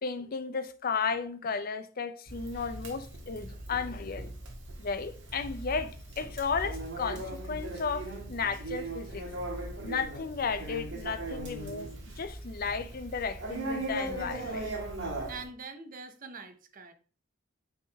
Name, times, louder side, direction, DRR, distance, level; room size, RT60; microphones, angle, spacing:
voice 1, 0.0-4.3 4.8-9.2 9.8-14.7, left 5 dB, 45° left, 0.5 m, -34 dB
Conversation, 2.3-15.5, right 1 dB, 60° right, 1.6 m, -39 dB
voice 2, 15.3-16.9, right 4 dB, 45° right, 0.8 m, -44 dB
8.4 x 3.7 x 3.4 m
head